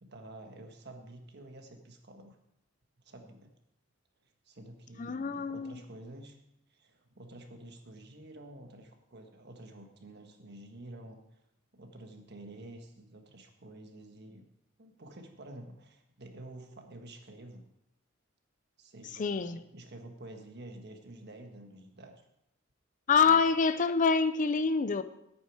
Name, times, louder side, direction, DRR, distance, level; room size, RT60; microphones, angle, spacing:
voice 1, 0.0-2.4 3.0-3.5 4.4-6.4 6.7-11.4 11.7-14.4 14.8-17.6 18.8-22.1 23.3-23.4, right 1 dB, 55° right, 1.5 m, -49 dB
voice 2, 5.0-5.8 19.2-19.6 23.1-25.0, left 5 dB, 40° left, 0.5 m, -26 dB
10.5 x 8.9 x 4.7 m
head